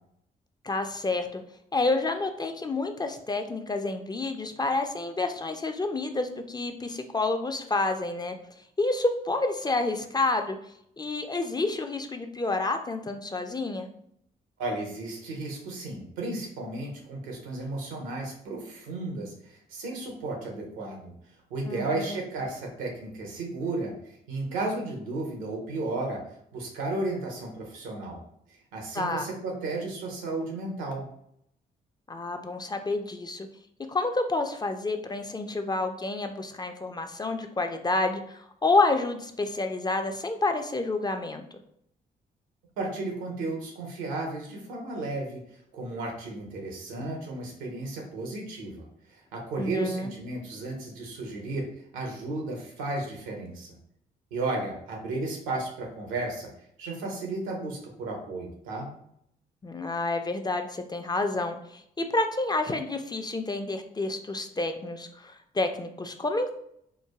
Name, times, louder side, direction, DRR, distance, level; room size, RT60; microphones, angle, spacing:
voice 1, 0.6-1.4 1.7-8.4 8.8-10.6 11.0-13.9 21.7-22.2 28.9-29.3 32.1-33.5 33.9-41.4 49.6-50.1 59.6-66.5, left 2 dB, 20° left, 6 dB, 0.4 m, -29 dB
voice 2, 14.6-21.1 21.5-26.2 26.5-28.2 28.5-31.1 42.8-45.4 45.7-51.7 51.9-53.7 54.3-56.5 56.8-58.9, right 2 dB, 80° right, 1 dB, 0.7 m, -34 dB
3.1 x 2.1 x 2.3 m, 0.71 s
hypercardioid pair, 45°, 21 cm